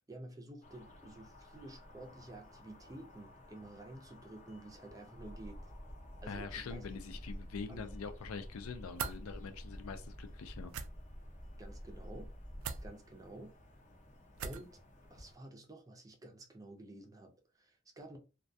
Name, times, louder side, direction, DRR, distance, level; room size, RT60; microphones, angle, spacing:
voice 1, 0.1-5.7 6.2-6.9 7.7-7.8 11.6-12.3 12.8-13.5 14.4-14.8 15.1-18.2, right 1 dB, 15° right, 0.4 m, -51 dB
sound 1, 0.6-15.4, left 1 dB, 35° left, 0.6 m, -56 dB
sound 2, 5.1-12.9, equal, 15° left, 0.9 m, -49 dB
voice 2, 6.3-10.7, left 5 dB, 80° left, 0.4 m, -44 dB
sound 3, 9.0-9.2 10.7-10.9 12.6-12.8 14.4-14.7, right 7 dB, 85° right, 0.4 m, -39 dB
2.2 x 2.2 x 2.6 m
head